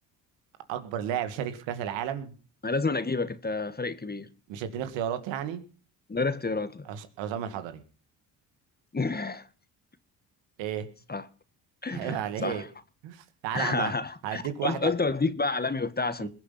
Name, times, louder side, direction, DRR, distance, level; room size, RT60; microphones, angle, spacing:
voice 1, 0.7-2.3 4.5-5.6 6.9-7.8 10.6-10.9 11.9-12.6 13.0-13.9 14.2-14.9 16.2-16.3, right 10 dB, 80° right, 2.2 m, -32 dB
voice 2, 2.6-4.3 6.1-6.9 8.9-9.5 11.1-11.3 11.8-12.7 13.5-16.3, left 3 dB, 20° left, 1.7 m, -29 dB
21.5 x 7.8 x 5.9 m
supercardioid pair, 60°, 44 cm